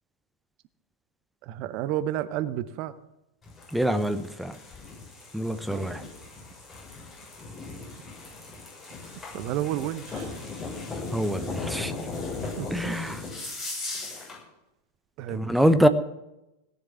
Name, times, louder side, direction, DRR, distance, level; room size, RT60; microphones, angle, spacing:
voice 1, 1.4-2.9 5.7-5.9 9.0-10.4 12.4-13.0 15.2-15.8, right 12 dB, 40° right, 0.8 m, -32 dB
sound 1, 3.4-14.4, left 3 dB, 20° left, 7.4 m, -37 dB
voice 2, 3.7-4.6 5.3-6.0 11.1-11.9 12.7-13.2 15.3-15.9, equal, ahead, 0.8 m, -24 dB
17.5 x 7.0 x 9.3 m
figure-of-eight pair, 90°, 0 cm